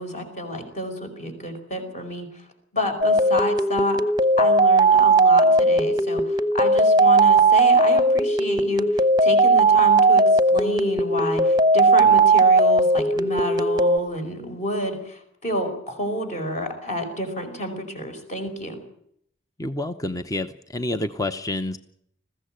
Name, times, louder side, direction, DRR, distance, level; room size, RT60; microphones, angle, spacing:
voice 1, 0.0-2.5 2.7-4.0 4.4-18.8, left 1 dB, 35° left, 5 dB, 4.8 m, -29 dB
sound 1, 3.0-14.0, right 2 dB, 20° right, 0.9 m, -17 dB
voice 2, 19.6-21.8, left 1 dB, 15° left, 9 dB, 0.7 m, -28 dB
21.0 x 15.5 x 8.9 m, 0.70 s
head